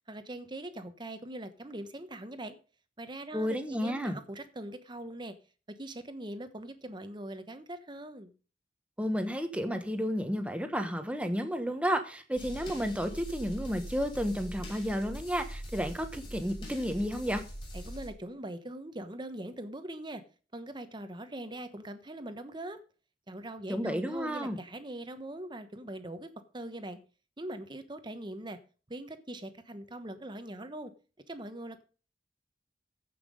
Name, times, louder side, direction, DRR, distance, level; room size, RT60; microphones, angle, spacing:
voice 1, 0.1-2.6 3.0-5.3 5.7-8.3 17.7-20.2 20.5-22.8 23.3-27.0 27.4-28.6 28.9-30.9 31.3-31.8, right 1 dB, 25° right, 1.1 m, -42 dB
voice 2, 3.3-4.2 9.0-17.4 23.7-24.6, equal, 5° right, 1.2 m, -32 dB
sound 1, 12.4-18.1, equal, 30° left, 5.9 m, -42 dB
15.0 x 6.0 x 5.2 m
head